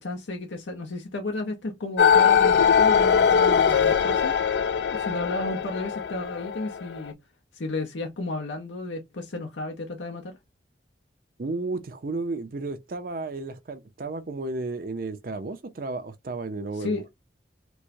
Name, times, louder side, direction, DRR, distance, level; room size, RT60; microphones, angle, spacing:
voice 1, 0.0-4.4 4.9-7.2 7.5-10.4 16.7-17.0, left 2 dB, 90° left, 0.7 m, -33 dB
sound 1, 2.0-7.1, left 7 dB, 70° left, 0.3 m, -21 dB
voice 2, 11.4-17.0, right 3 dB, 50° right, 0.5 m, -33 dB
4.5 x 2.1 x 2.6 m
head